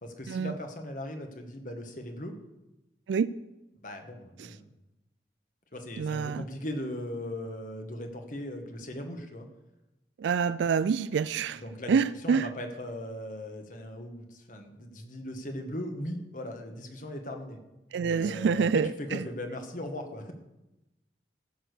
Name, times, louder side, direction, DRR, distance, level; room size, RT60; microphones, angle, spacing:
voice 1, 0.0-2.4 3.8-4.7 5.7-9.5 11.6-17.6 17.9-20.3, left 1 dB, 45° left, 1.4 m, -38 dB
voice 2, 6.0-6.4 10.2-11.6 11.9-12.5 17.9-19.2, right 6 dB, 80° right, 0.3 m, -27 dB
14.5 x 6.3 x 6.7 m
head